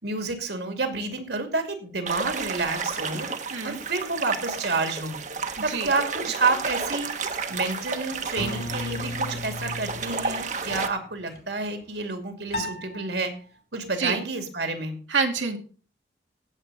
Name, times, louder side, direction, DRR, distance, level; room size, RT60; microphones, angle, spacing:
voice 1, 0.0-3.3 3.6-5.2 5.6-7.1 7.5-13.3 13.7-15.0, right 3 dB, 65° right, 6 dB, 2.6 m, -29 dB
sound 1, 2.1-10.9, right 4 dB, 40° right, 1.2 m, -32 dB
voice 2, 5.6-5.9 14.0-14.2 15.1-15.6, right 5 dB, 85° right, 3 dB, 2.2 m, -26 dB
sound 2, 8.0-8.1 8.4-10.4 10.6-10.9 11.3-11.7 12.5-13.1, left 1 dB, 55° left, 3.2 m, -35 dB
17.0 x 7.8 x 4.1 m, 0.39 s
head